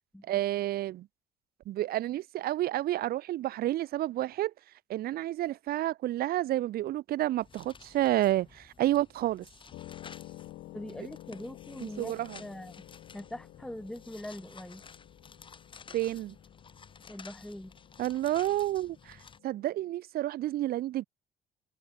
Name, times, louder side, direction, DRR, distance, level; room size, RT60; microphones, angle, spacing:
voice 1, 0.2-1.1 1.7-4.5 4.9-9.5 11.8-12.4 15.9-16.4 18.0-21.0, right 14 dB, 65° right, 0.8 m, -30 dB
sound 1, 7.4-19.4, left 5 dB, 30° left, 1.7 m, -53 dB
sound 2, 9.7-19.9, left 16 dB, 80° left, 3.8 m, -51 dB
voice 2, 10.7-12.9 13.1-14.8 17.1-17.7, left 1 dB, 5° left, 1.9 m, -42 dB
cardioid pair, 110°, 17 cm